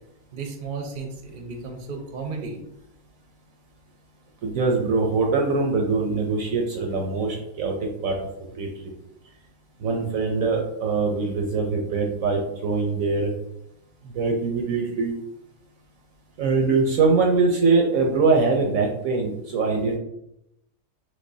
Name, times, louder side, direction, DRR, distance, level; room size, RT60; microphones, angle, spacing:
voice 1, 0.3-2.6, right 4 dB, 45° right, 3 dB, 0.7 m, -34 dB
voice 2, 4.4-8.2 8.5-8.7 9.8-13.3 14.1-15.2 16.4-20.0, right 4 dB, 65° right, 0 dB, 1.0 m, -23 dB
5.2 x 3.6 x 2.7 m, 0.82 s
omnidirectional pair, 1.7 m